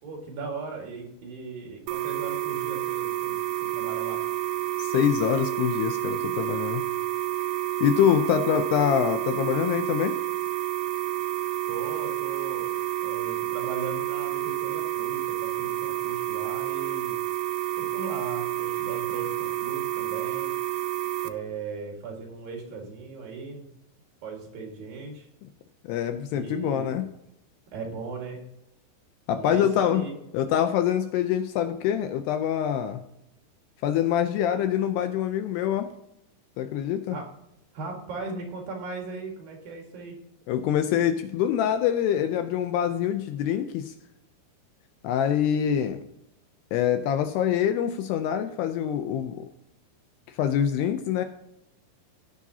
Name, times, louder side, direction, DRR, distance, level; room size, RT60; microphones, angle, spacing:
voice 1, 0.0-4.2 11.7-12.8 13.0-17.2 17.8-20.5 21.2-23.7 24.2-25.3 26.3-27.0 27.7-28.4 29.4-30.1 37.1-37.3 37.7-40.2, right 4 dB, 60° right, 1 dB, 3.2 m, -38 dB
sound 1, 1.9-21.3, right 14 dB, 80° right, 2.3 m, -29 dB
voice 2, 4.8-6.8 7.8-10.2 25.8-27.1 29.3-30.0 30.3-33.0 33.8-35.9 36.6-37.2 40.5-43.9 45.0-46.0 46.7-49.5 50.3-51.2, left 9 dB, 80° left, 8 dB, 2.5 m, -25 dB
17.5 x 7.4 x 2.8 m, 0.84 s
omnidirectional pair, 5.1 m